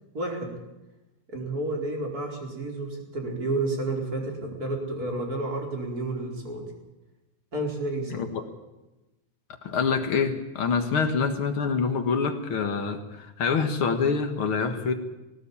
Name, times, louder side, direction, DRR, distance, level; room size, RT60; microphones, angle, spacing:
voice 1, 0.1-0.5 1.3-6.6 7.5-8.3, right 2 dB, 20° right, 1 dB, 4.7 m, -30 dB
voice 2, 8.1-8.5 9.6-14.9, left 5 dB, 60° left, 6 dB, 1.4 m, -26 dB
20.0 x 18.5 x 8.5 m, 1.0 s
omnidirectional pair, 4.8 m